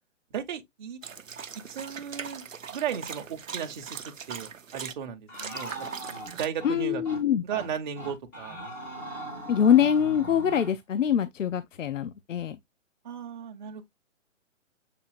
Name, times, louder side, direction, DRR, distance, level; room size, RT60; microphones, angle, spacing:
voice 1, 0.3-1.0 1.7-6.0 6.4-7.0 7.4-8.6 13.0-13.9, right 8 dB, 35° right, 0.8 m, -35 dB
sound 1, 1.0-4.9 5.3-6.5, right 7 dB, 85° right, 0.7 m, -40 dB
sound 2, 5.3-6.7 7.1-7.2 7.5-7.7 8.0-10.7, right 1 dB, 5° left, 0.4 m, -40 dB
voice 2, 6.6-7.4 9.5-12.6, left 9 dB, 75° left, 0.6 m, -24 dB
6.7 x 2.8 x 2.4 m
figure-of-eight pair, 135°, 38 cm